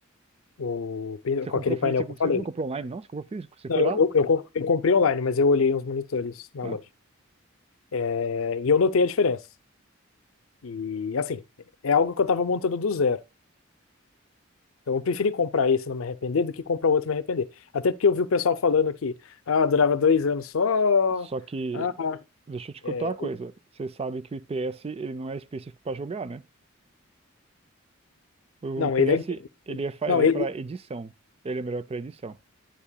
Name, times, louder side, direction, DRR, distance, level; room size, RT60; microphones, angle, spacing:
voice 1, 0.6-2.4 3.7-6.8 7.9-9.4 10.6-11.4 11.8-13.2 14.9-17.5 17.7-19.1 19.5-21.3 21.7-22.2 22.8-23.3 28.8-29.2 29.7-29.8 30.1-30.5, left 5 dB, 75° left, 0.6 m, -24 dB
voice 2, 1.5-4.0 6.6-6.8 21.3-21.9 22.5-23.5 23.8-26.4 28.6-29.4 29.7-31.1 31.4-32.4, right 3 dB, 30° right, 0.4 m, -33 dB
10.0 x 9.9 x 2.2 m
head